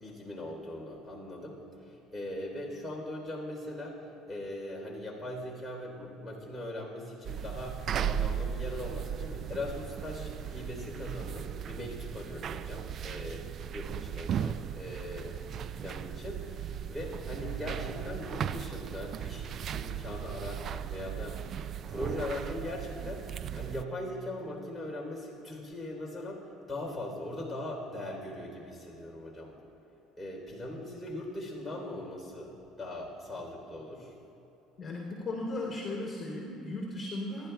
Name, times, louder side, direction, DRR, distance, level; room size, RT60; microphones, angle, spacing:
voice 1, 0.0-15.4 15.7-21.4 21.9-23.3 23.5-29.6 30.2-34.1, left 1 dB, 10° left, -4 dB, 3.5 m, -40 dB
sound 1, 7.2-23.8, right 9 dB, 50° right, 0.3 m, -37 dB
voice 2, 34.8-37.5, left 2 dB, 30° left, -2 dB, 2.9 m, -36 dB
27.0 x 11.5 x 2.3 m, 2.9 s
supercardioid pair, 100°, 0 cm